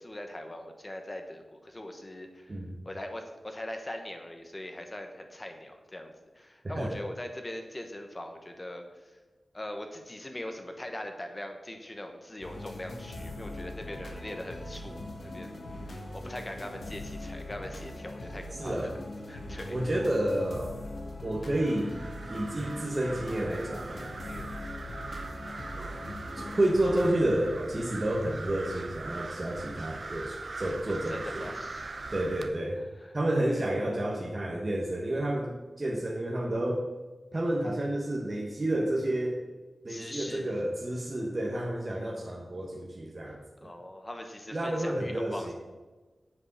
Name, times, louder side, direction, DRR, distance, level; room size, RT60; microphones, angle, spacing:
voice 1, 0.0-9.2 9.5-15.6 15.8-18.9 19.3-19.8 24.2-24.6 30.9-32.1 33.0-33.9 39.9-40.6 43.6-45.5, left 1 dB, 25° left, 5 dB, 1.1 m, -41 dB
sound 1, 12.4-27.1, left 1 dB, 65° left, 1.5 m, -41 dB
voice 2, 18.6-18.9 19.7-20.8 21.2-22.0 22.3-24.1 25.8-25.9 26.3-31.5 32.1-32.8 33.1-36.9 37.3-39.4 39.8-43.7 44.5-45.5, right 1 dB, 35° right, -1 dB, 1.2 m, -30 dB
sound 2, 21.5-32.5, right 3 dB, 55° right, 0.7 m, -41 dB
8.3 x 5.1 x 6.6 m, 1.2 s
wide cardioid pair, 100°, 0 cm